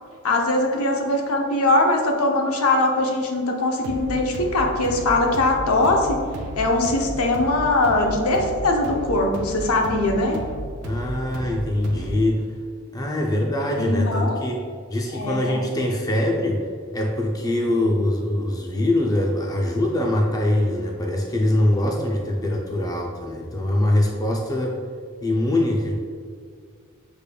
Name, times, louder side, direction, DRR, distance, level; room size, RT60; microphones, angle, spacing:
voice 1, 0.2-6.2 6.6-10.4 13.8-14.4 15.1-15.5, left 2 dB, 80° left, 1 dB, 0.7 m, -21 dB
sound 1, 3.8-12.3, right 1 dB, 70° right, 0.5 m, -34 dB
voice 2, 10.8-12.5 12.9-14.6 14.9-16.7 16.9-24.8 25.2-26.0, left 1 dB, 15° left, 0 dB, 0.4 m, -23 dB
6.6 x 3.2 x 2.2 m, 2.1 s
head